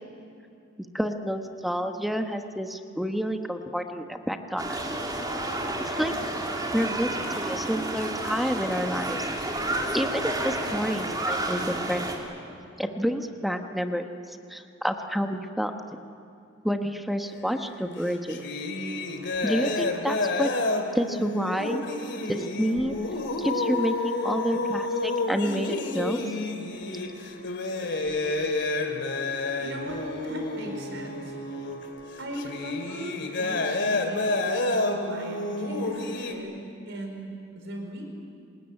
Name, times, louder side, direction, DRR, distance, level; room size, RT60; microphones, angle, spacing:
voice 1, 0.8-4.8 5.8-6.1 6.7-9.3 9.9-12.0 12.8-15.7 16.6-18.4 19.4-20.5 20.9-21.8 22.3-23.0 23.4-26.2 27.8-27.9, equal, ahead, 5 dB, 1.1 m, -29 dB
sound 1, 4.6-12.2, right 1 dB, 20° right, 3.0 m, -30 dB
sound 2, 17.3-17.6 17.8-36.3, left 2 dB, 60° left, 2.6 m, -30 dB
voice 2, 29.6-31.3 32.2-38.0, right 1 dB, 65° right, 3 dB, 5.0 m, -38 dB
26.0 x 20.5 x 9.8 m, 2.5 s
head